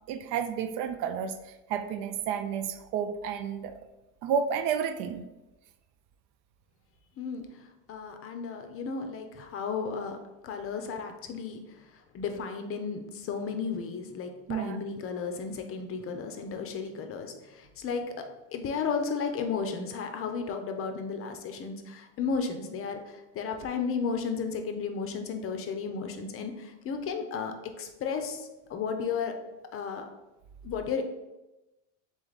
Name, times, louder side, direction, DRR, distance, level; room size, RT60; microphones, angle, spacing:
voice 1, 0.1-1.4 1.7-3.8 4.2-5.2 14.5-14.8, right 7 dB, 60° right, 10 dB, 0.5 m, -31 dB
voice 2, 7.9-10.2 10.4-11.6 12.1-18.1 18.5-29.3 29.7-30.1 30.6-31.0, left 5 dB, 35° left, 6 dB, 0.6 m, -34 dB
3.7 x 3.3 x 3.9 m, 1.0 s
supercardioid pair, 115°, 38 cm